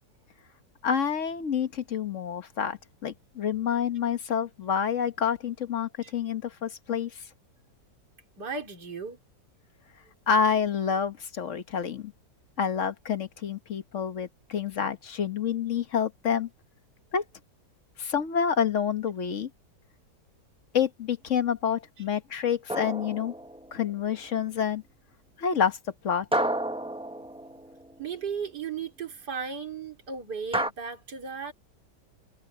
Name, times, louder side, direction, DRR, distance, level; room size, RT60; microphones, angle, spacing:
voice 1, 0.8-7.2 10.3-12.1 12.6-16.5 17.1-17.2 18.0-19.5 20.7-23.3 23.7-24.8 25.4-25.8 26.0-26.5, left 7 dB, 50° left, 1.4 m, -28 dB
voice 2, 8.4-9.2 28.0-31.5, right 6 dB, 70° right, 4.1 m, -35 dB
sound 1, 22.7-23.9 26.3-28.0 30.5-30.7, right 1 dB, 5° right, 0.7 m, -31 dB
omnidirectional pair, 1.9 m